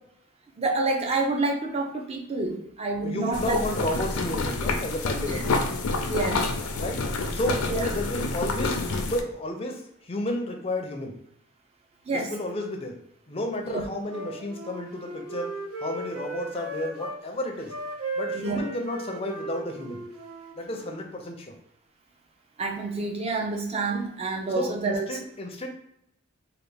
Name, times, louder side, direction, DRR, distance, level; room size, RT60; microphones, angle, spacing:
voice 1, 0.6-3.6 5.2-5.4 6.1-6.5 7.7-7.9 12.1-12.3 13.7-13.9 18.3-18.6 22.6-25.2, right 3 dB, 30° right, 1 dB, 0.4 m, -28 dB
voice 2, 2.9-5.6 6.8-11.1 12.1-13.0 13.3-15.5 15.8-17.7 18.2-20.0 20.6-21.6 24.5-25.7, left 1 dB, 25° left, 3 dB, 0.4 m, -32 dB
sound 1, 3.3-9.2, left 3 dB, 90° left, 0.5 m, -28 dB
Wind instrument woodwind instrument, 14.1-17.2 17.6-21.1, right 2 dB, 90° right, 0.6 m, -36 dB
3.4 x 2.3 x 3.3 m, 0.75 s
head